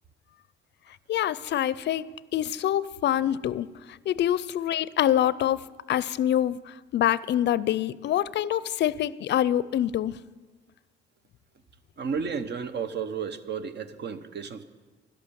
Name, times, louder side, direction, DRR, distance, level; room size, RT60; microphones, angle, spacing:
voice 1, 1.1-3.7 4.1-10.1, left 11 dB, 60° left, 19 dB, 0.4 m, -26 dB
voice 2, 12.0-14.6, right 6 dB, 60° right, 12 dB, 0.9 m, -32 dB
12.0 x 11.5 x 6.9 m, 1.4 s
cardioid pair, 90°, 20 cm